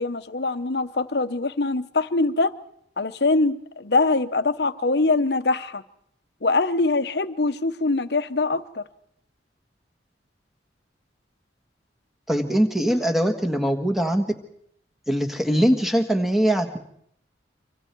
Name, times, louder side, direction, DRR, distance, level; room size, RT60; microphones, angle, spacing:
voice 1, 0.0-2.5 3.0-5.8 6.4-8.8, left 3 dB, 65° left, 11 dB, 0.9 m, -23 dB
voice 2, 12.3-14.2 15.1-16.8, equal, ahead, 4 dB, 1.6 m, -22 dB
25.0 x 25.0 x 4.6 m, 0.70 s
head